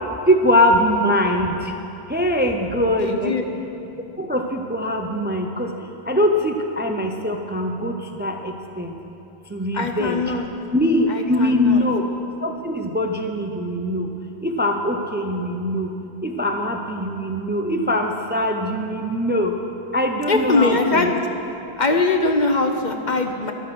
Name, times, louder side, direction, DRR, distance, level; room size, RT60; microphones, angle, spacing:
voice 1, 0.3-1.5 2.1-3.4 4.2-5.7 6.1-7.9 8.2-8.9 9.5-10.2 10.7-12.0 12.4-14.1 14.4-15.9 16.2-19.5 19.9-21.1, left 1 dB, 10° right, 3 dB, 0.5 m, -22 dB
voice 2, 3.0-3.4 9.7-10.5 11.1-11.8 20.3-21.2 21.8-23.5, left 3 dB, 50° left, 5 dB, 0.9 m, -21 dB
13.0 x 11.5 x 5.9 m, 2.9 s
omnidirectional pair, 1.1 m